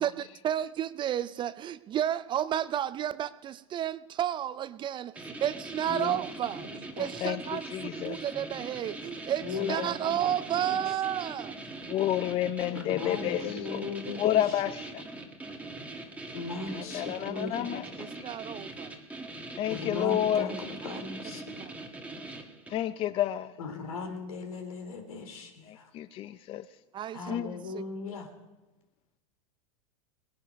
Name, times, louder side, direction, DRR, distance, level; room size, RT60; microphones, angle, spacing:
voice 1, 0.0-7.7 8.0-11.6 18.0-19.0 20.9-21.0 21.6-21.7 26.9-27.5 27.7-27.8, right 10 dB, 25° right, 0.4 m, -32 dB
sound 1, 5.2-22.9, right 2 dB, 10° right, 1.6 m, -42 dB
voice 2, 5.8-6.2 6.5-7.1 9.4-10.8 12.7-14.4 16.3-17.7 19.7-20.5 20.8-21.4 23.6-25.9 27.1-28.3, left 4 dB, 75° left, 3.2 m, -37 dB
voice 3, 7.2-8.2 9.5-9.8 11.9-13.8 14.2-15.1 16.5-17.9 19.6-20.5 22.7-23.6 25.7-26.8 27.3-27.6, left 11 dB, 30° left, 0.5 m, -30 dB
20.0 x 10.5 x 5.2 m
hypercardioid pair, 105°, 18 cm